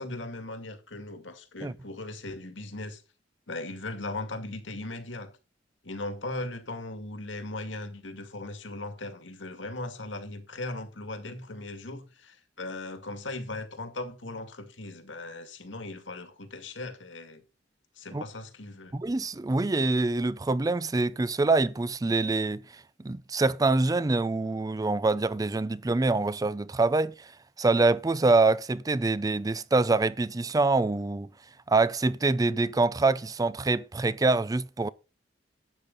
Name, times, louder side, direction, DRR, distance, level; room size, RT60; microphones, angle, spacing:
voice 1, 0.0-3.0 3.5-5.3 5.8-17.4 18.0-18.9, left 2 dB, 80° left, 2.1 m, -38 dB
voice 2, 18.9-22.6 23.0-27.3 27.6-31.3 31.7-34.9, right 3 dB, 20° right, 0.4 m, -25 dB
12.0 x 8.8 x 4.0 m
head